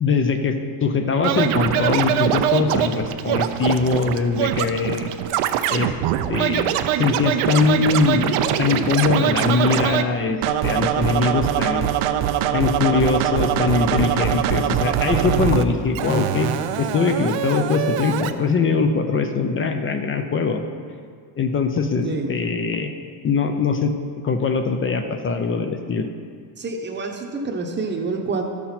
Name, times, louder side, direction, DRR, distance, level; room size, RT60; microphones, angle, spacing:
voice 1, 0.0-5.1 5.7-5.9 6.3-6.7 7.0-10.4 10.6-11.9 12.5-16.5 16.8-20.6 21.4-22.9 23.2-23.9 24.2-26.1, left 4 dB, 25° left, 7 dB, 0.5 m, -21 dB
Scratching (performance technique), 1.2-10.0 10.4-15.6 15.9-18.3, right 11 dB, 90° right, 0.6 m, -23 dB
voice 2, 22.0-22.4 26.6-28.4, right 3 dB, 20° right, 3 dB, 0.8 m, -27 dB
12.5 x 6.1 x 4.3 m, 2.1 s
cardioid pair, 150°, 49 cm